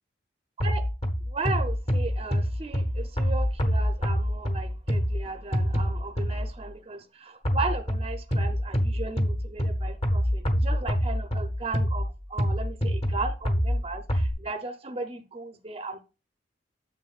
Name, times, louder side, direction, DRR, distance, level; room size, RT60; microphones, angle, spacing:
sound 1, 0.6-6.7 7.4-14.3, equal, 30° left, 1.0 m, -27 dB
voice 1, 1.3-16.0, right 3 dB, 30° right, 0.6 m, -36 dB
9.1 x 7.2 x 2.4 m
head